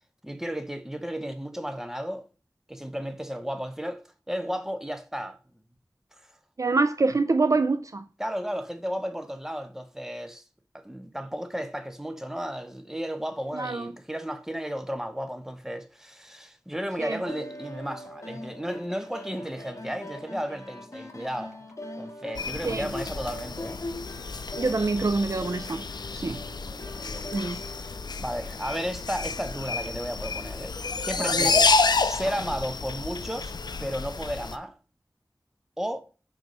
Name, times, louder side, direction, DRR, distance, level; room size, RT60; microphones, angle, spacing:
voice 1, 0.2-2.2 2.7-4.0 4.3-5.4 6.2-6.3 8.2-10.4 10.7-21.7 22.0-23.8 26.3-27.8 28.2-30.7 31.0-31.7 32.0-33.5 33.8-34.7 35.8-36.0, equal, 5° right, 0.8 m, -34 dB
voice 2, 6.6-8.0 13.5-13.9 17.0-17.2 22.6-22.9 24.6-25.8 26.1-26.4 27.3-27.6 31.2-31.5, right 3 dB, 50° right, 0.3 m, -25 dB
sound 1, 17.2-28.1, left 1 dB, 45° left, 1.0 m, -41 dB
sound 2, 22.3-34.6, left 4 dB, 80° left, 0.4 m, -29 dB
4.6 x 3.9 x 5.2 m
wide cardioid pair, 40°, 7 cm